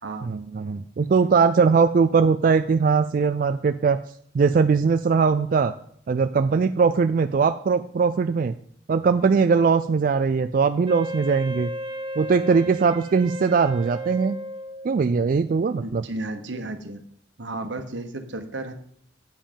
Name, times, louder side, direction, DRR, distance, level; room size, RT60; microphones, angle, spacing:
voice 1, 0.2-4.0 4.3-5.7 6.1-8.5 8.9-11.7 12.2-14.4 14.8-16.0, right 5 dB, 50° right, 9 dB, 0.3 m, -20 dB
Wind instrument woodwind instrument, 10.9-15.1, right 1 dB, 30° right, 0.9 m, -34 dB
voice 2, 15.8-17.0 17.4-18.8, right 2 dB, 80° right, 7 dB, 1.2 m, -33 dB
8.9 x 7.5 x 5.2 m, 0.64 s
head